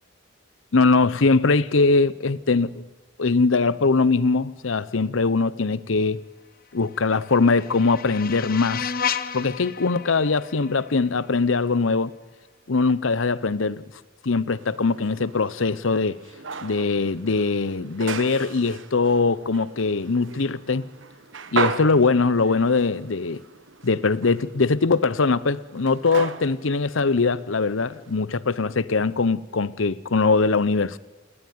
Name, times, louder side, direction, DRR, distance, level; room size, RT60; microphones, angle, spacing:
voice 1, 0.7-2.8 3.2-6.2 6.7-8.9 9.3-12.1 12.7-13.8 14.2-16.2 16.6-20.9 21.5-23.4 23.8-31.0, left 4 dB, 75° left, 0.8 m, -21 dB
sound 1, 6.8-11.8, left 7 dB, 45° left, 1.1 m, -33 dB
sound 2, 14.5-28.2, right 4 dB, 70° right, 1.5 m, -36 dB
28.5 x 19.0 x 9.4 m
head